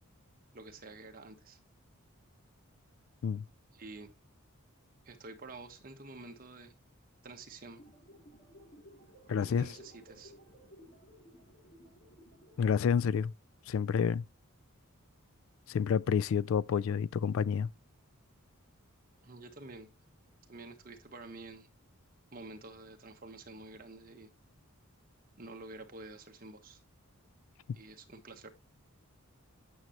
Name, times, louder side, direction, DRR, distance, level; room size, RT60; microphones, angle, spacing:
voice 1, 0.5-1.6 3.7-4.1 5.0-6.7 7.2-7.8 9.3-10.3 19.2-19.9 20.5-21.7 22.3-24.3 25.4-26.8 27.7-28.5, right 2 dB, 40° right, 1.3 m, -49 dB
sound 1, 7.7-12.7, equal, 35° left, 3.0 m, -57 dB
voice 2, 9.3-9.7 12.6-13.3 13.7-14.2 15.7-17.7, left 7 dB, 65° left, 0.3 m, -29 dB
9.3 x 6.4 x 3.0 m
head